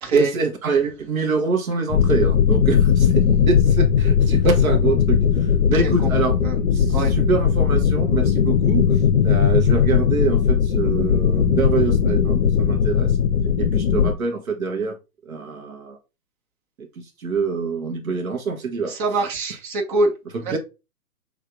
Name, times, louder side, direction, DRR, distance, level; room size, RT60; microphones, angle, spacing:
voice 1, 0.1-6.4 6.7-13.2 13.6-15.0 15.3-16.0 17.0-18.9 20.5-20.6, right 4 dB, 65° right, 4 dB, 1.1 m, -25 dB
sound 1, 1.9-14.1, left 7 dB, 45° left, 0.7 m, -18 dB
voice 2, 18.9-20.1 20.4-20.6, right 2 dB, 35° right, 1 dB, 1.4 m, -24 dB
6.5 x 2.7 x 2.5 m, 0.28 s
figure-of-eight pair, 130°, 45 cm